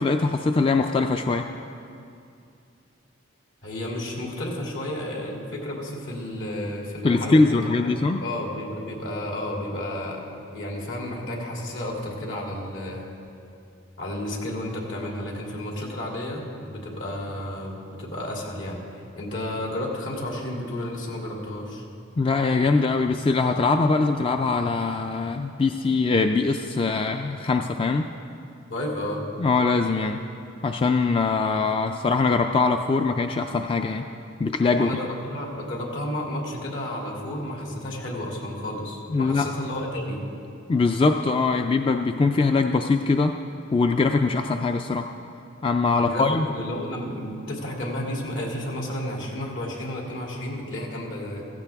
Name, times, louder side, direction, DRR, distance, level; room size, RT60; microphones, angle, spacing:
voice 1, 0.0-1.5 7.0-8.2 22.2-28.1 29.4-30.2 30.6-34.1 34.4-34.9 39.1-39.5 40.7-43.4 43.7-45.1 45.6-46.4, left 3 dB, 30° left, 5 dB, 0.4 m, -22 dB
voice 2, 3.6-10.2 10.5-13.0 14.0-18.8 19.2-21.8 28.7-29.2 34.7-40.2 46.0-51.4, left 1 dB, 75° left, -2 dB, 2.8 m, -32 dB
16.0 x 15.5 x 3.5 m, 2.5 s
head